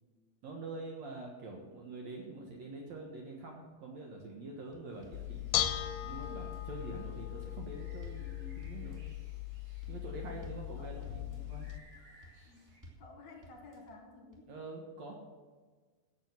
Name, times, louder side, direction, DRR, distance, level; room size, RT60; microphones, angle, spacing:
voice 1, 0.4-9.0 9.9-11.7 14.5-15.2, right 2 dB, 85° right, 1 dB, 1.5 m, -45 dB
sound 1, 4.7-5.2 5.5-5.9 6.2-6.7 7.1-7.6 7.9-8.3 8.6-9.1 9.5-10.0 10.3-10.7 11.0-11.5 11.9-12.4 12.7-13.1 13.4-13.9 14.3-14.4, equal, 30° right, 0.3 m, -56 dB
sound 2, 4.9-12.8, right 1 dB, 70° right, 6.6 m, -64 dB
Bell / Dishes pots and pans, 5.1-11.8, left 13 dB, 85° left, 3.1 m, -38 dB
voice 2, 10.8-11.7 12.4-14.5, left 2 dB, 60° left, 2 dB, 2.1 m, -54 dB
15.5 x 6.4 x 7.5 m, 1.4 s
omnidirectional pair, 5.3 m